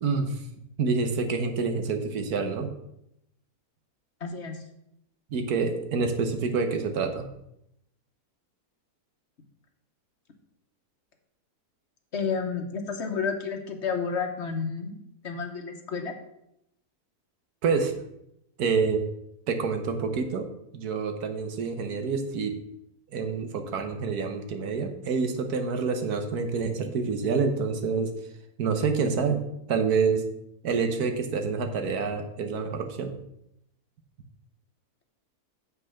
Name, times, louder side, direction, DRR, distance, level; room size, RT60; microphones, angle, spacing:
voice 1, 0.0-0.4 0.8-2.7 5.3-7.3 17.6-17.9 18.6-19.0 19.5-20.5 20.7-22.6 23.1-28.1 28.6-29.4 29.7-30.2 30.6-33.1, right 5 dB, 80° right, 6 dB, 1.5 m, -27 dB
voice 2, 4.2-4.6 12.1-15.0 15.2-16.1, left 5 dB, 50° left, 5 dB, 1.3 m, -31 dB
7.7 x 6.1 x 5.7 m, 0.79 s
omnidirectional pair, 1.6 m